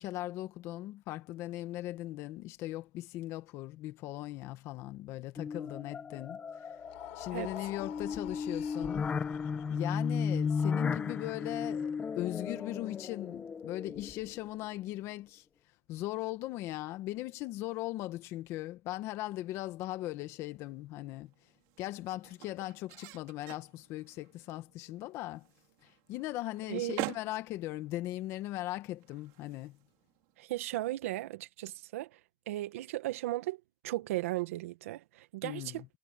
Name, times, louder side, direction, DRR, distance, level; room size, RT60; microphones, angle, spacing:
voice 1, 0.0-6.7 7.1-9.1 9.7-15.4 15.9-21.3 21.8-25.5 25.8-29.8 35.4-35.9, left 16 dB, 40° left, 1.6 m, -39 dB
sound 1, 5.4-14.5, left 6 dB, 15° left, 1.3 m, -35 dB
sound 2, 6.7-13.0, left 20 dB, 70° left, 4.6 m, -51 dB
sound 3, 20.1-30.4, right 25 dB, 50° right, 4.5 m, -47 dB
voice 2, 26.7-27.0 30.4-32.2 32.5-35.8, right 16 dB, 80° right, 1.8 m, -36 dB
supercardioid pair, 165°, 7 cm